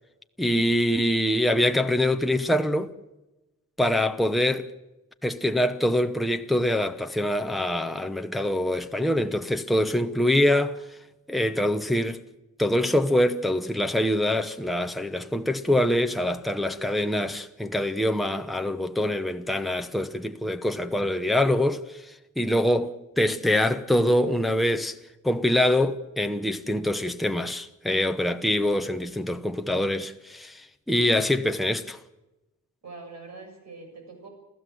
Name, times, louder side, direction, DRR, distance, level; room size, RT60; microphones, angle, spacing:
voice 1, 0.4-2.9 3.8-4.7 5.2-10.8 11.3-12.2 12.6-25.0 25.2-32.0, left 1 dB, ahead, 0.8 m, -24 dB
voice 2, 32.8-34.3, right 3 dB, 60° right, 7.3 m, -44 dB
29.0 x 15.0 x 7.8 m
wide cardioid pair, 180°, 30 cm